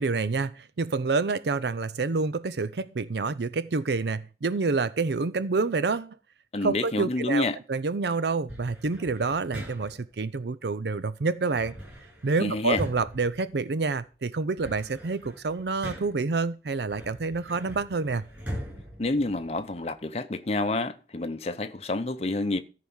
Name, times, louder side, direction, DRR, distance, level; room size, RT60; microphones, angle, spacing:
voice 1, 0.0-6.2 6.6-11.7 12.2-18.2, right 4 dB, 65° right, 0.5 m, -28 dB
voice 2, 6.5-7.6 12.4-12.8 19.0-22.6, left 2 dB, 35° left, 0.7 m, -28 dB
sound 1, 8.5-10.1 11.6-14.0 14.4-16.3 16.9-19.9, equal, 10° right, 7.8 m, -41 dB
14.0 x 4.8 x 7.1 m
head